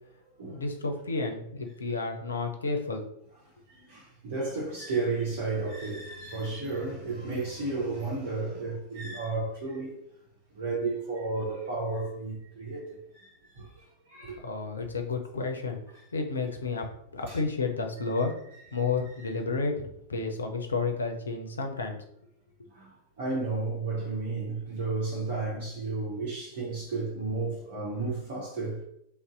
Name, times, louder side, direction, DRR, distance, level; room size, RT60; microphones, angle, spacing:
voice 1, 0.5-3.1 14.4-15.8 16.1-16.9 17.1-18.3 18.7-22.0, left 4 dB, 75° left, 0.5 m, -31 dB
voice 2, 3.7-10.0 10.5-14.4 15.9-16.0 17.3-17.4 19.2-19.3 22.7-28.8, right 3 dB, 60° right, 0.9 m, -33 dB
2.6 x 2.1 x 3.7 m
figure-of-eight pair, 90°, 0 cm